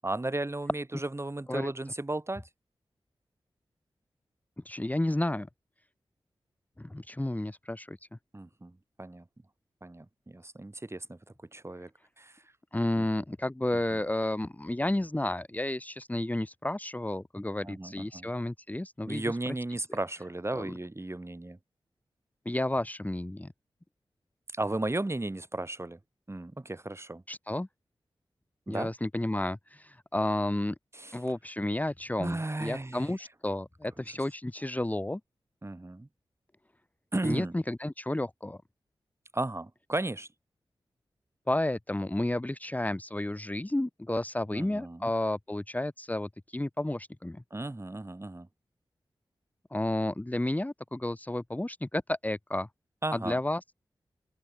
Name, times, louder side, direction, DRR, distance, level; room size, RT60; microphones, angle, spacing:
voice 1, 0.0-2.5 8.3-9.2 9.8-11.2 11.5-11.9 12.2-12.4 13.9-14.0 17.6-18.3 19.1-21.6 24.5-26.0 26.3-27.2 28.7-28.9 30.9-31.2 32.2-33.1 34.1-34.2 35.6-36.1 37.1-37.5 39.3-40.3 44.5-45.1 47.5-48.5 53.0-53.4, right 2 dB, 30° right, 7.9 m, -35 dB
voice 2, 4.6-5.5 6.8-8.0 12.7-19.3 20.5-20.7 22.4-23.5 27.3-27.7 28.7-30.7 31.1-35.2 37.2-38.6 41.5-47.4 49.7-52.7 53.1-53.7, left 1 dB, 15° left, 1.3 m, -31 dB
open air
cardioid pair, 40°, 9 cm